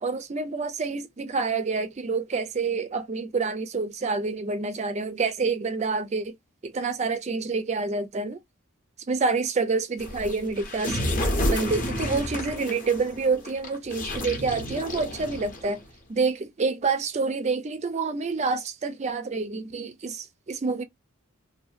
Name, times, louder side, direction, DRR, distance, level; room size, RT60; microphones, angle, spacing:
voice 1, 0.0-6.3 6.6-8.4 9.1-11.0 11.5-15.8 16.1-20.8, right 4 dB, 30° right, 0.3 m, -27 dB
sound 1, 10.0-15.9, left 1 dB, 35° left, 0.7 m, -30 dB
2.6 x 2.2 x 2.4 m
head